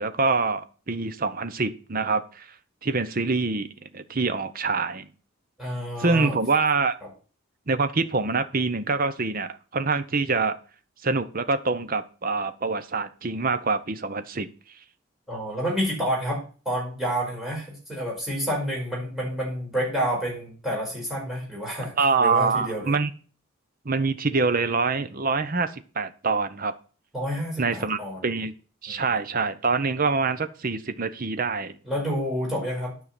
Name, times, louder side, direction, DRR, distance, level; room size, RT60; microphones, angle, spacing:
voice 1, 0.0-2.5 2.8-5.1 6.0-7.0 7.7-10.6 11.0-14.5 22.0-23.1 23.8-26.8 27.6-28.5 28.8-31.7, right 4 dB, 45° right, 12 dB, 0.8 m, -25 dB
voice 2, 5.6-6.4 15.3-21.9 22.2-22.9 27.1-28.2 28.9-29.0 31.8-33.0, equal, ahead, -4 dB, 5.2 m, -29 dB
9.8 x 5.7 x 7.6 m, 0.39 s
head